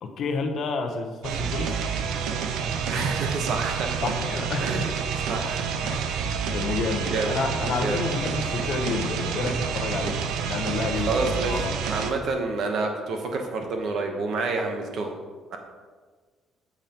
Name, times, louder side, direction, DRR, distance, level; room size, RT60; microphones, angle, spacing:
voice 1, 0.0-1.8 4.0-4.9 5.8-6.2 6.5-11.1 11.4-11.7, left 4 dB, 50° left, 5 dB, 0.9 m, -30 dB
sound 1, 1.2-12.1, right 6 dB, 85° right, 0.6 m, -28 dB
voice 2, 2.8-4.1 4.6-4.9 5.3-5.6 6.2-6.3 7.1-7.4 7.8-8.1 11.1-15.2 15.5-15.6, right 3 dB, 55° right, 3 dB, 1.0 m, -28 dB
8.8 x 7.3 x 2.9 m, 1.5 s
cardioid pair, 155°, 0 cm